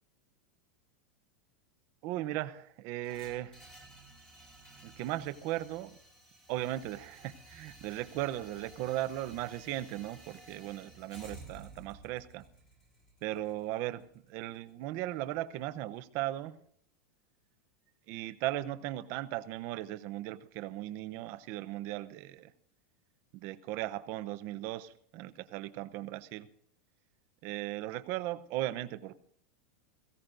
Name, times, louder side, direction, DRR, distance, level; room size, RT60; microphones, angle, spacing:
voice 1, 2.0-3.6 4.8-6.0 6.5-12.4 13.2-14.0 14.3-16.6 18.1-22.5 23.3-26.5 27.4-29.1, right 15 dB, 35° right, 12 dB, 0.7 m, -37 dB
sound 1, 3.0-15.1, right 2 dB, 10° left, 2.2 m, -54 dB
22.5 x 16.0 x 2.6 m, 0.64 s
supercardioid pair, 175°, 7 cm